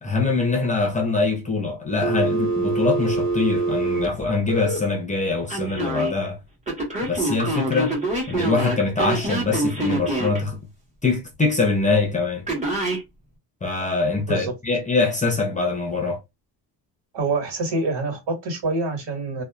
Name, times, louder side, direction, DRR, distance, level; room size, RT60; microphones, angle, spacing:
voice 1, 0.0-6.4 7.0-8.0 8.3-10.6 11.0-12.4 13.6-16.2, left 3 dB, 15° left, 0.7 m, -23 dB
Telephone, 2.0-4.8 5.5-6.1 6.7-10.4 12.5-13.0, right 2 dB, 15° right, 1.2 m, -25 dB
voice 2, 17.1-19.4, right 3 dB, 65° right, 1.8 m, -26 dB
2.7 x 2.4 x 2.3 m
cardioid pair, 135°, 43 cm